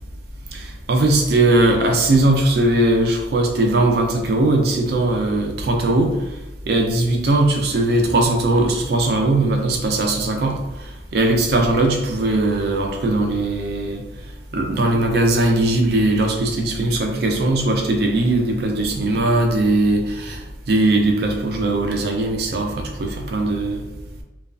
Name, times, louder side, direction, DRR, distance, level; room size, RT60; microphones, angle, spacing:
voice 1, 0.5-6.1 6.7-14.0 14.5-23.8, right 2 dB, 60° right, 2 dB, 0.4 m, -19 dB
2.3 x 2.2 x 2.4 m, 0.99 s
head